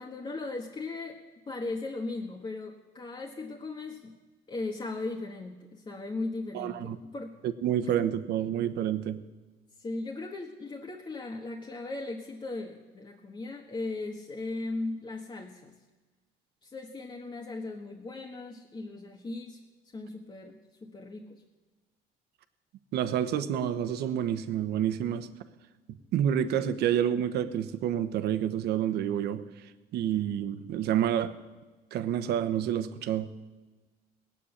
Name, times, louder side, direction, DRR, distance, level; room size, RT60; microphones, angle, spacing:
voice 1, 0.0-4.1 4.5-7.4 9.8-15.7 16.6-19.6 19.9-21.4, left 3 dB, 25° left, 0 dB, 1.5 m, -38 dB
voice 2, 6.5-7.0 7.4-9.2 22.9-25.3 26.1-29.4 29.9-31.3 31.9-33.3, right 10 dB, 75° right, 11 dB, 1.1 m, -28 dB
17.5 x 8.2 x 9.9 m, 1.2 s
cardioid pair, 110°, 17 cm